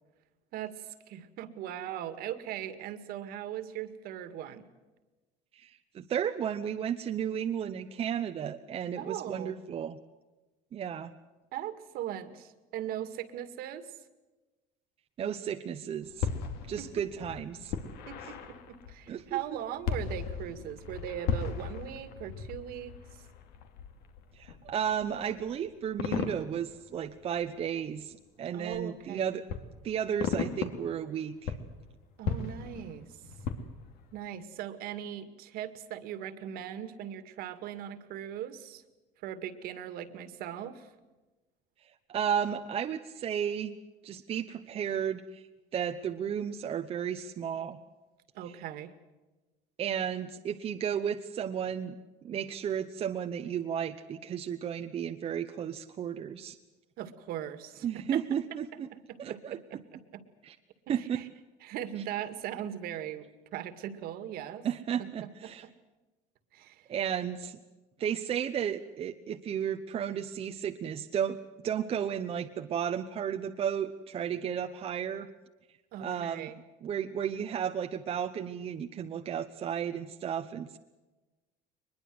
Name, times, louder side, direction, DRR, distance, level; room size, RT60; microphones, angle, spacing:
voice 1, 0.5-4.6 9.0-9.6 11.5-13.9 16.8-16.9 18.1-23.2 28.5-29.4 32.2-33.2 34.1-38.8 39.2-40.9 48.3-48.9 57.0-58.2 58.9-60.2 60.9-61.3 61.6-63.3 63.5-64.7 65.0-65.1 65.4-65.7 66.5-66.9 75.9-76.6, right 10 dB, 60° right, 11 dB, 2.1 m, -39 dB
voice 2, 5.5-10.0 10.7-11.1 15.2-16.3 16.7-17.7 19.1-19.6 24.4-29.4 29.8-31.5 42.1-43.7 44.0-45.5 45.7-47.8 49.8-52.0 52.2-56.6 57.8-58.9 59.2-59.6 60.4-60.5 60.9-61.2 64.6-65.6 66.9-67.6 68.0-75.3 76.0-76.5 76.8-80.8, right 8 dB, 35° right, 5 dB, 0.9 m, -33 dB
sound 1, 16.0-28.0 28.7-28.8 29.4-31.1 31.4-34.2, left 6 dB, 65° left, 2.7 m, -37 dB
23.0 x 21.0 x 7.8 m, 1.2 s
cardioid pair, 140°, 18 cm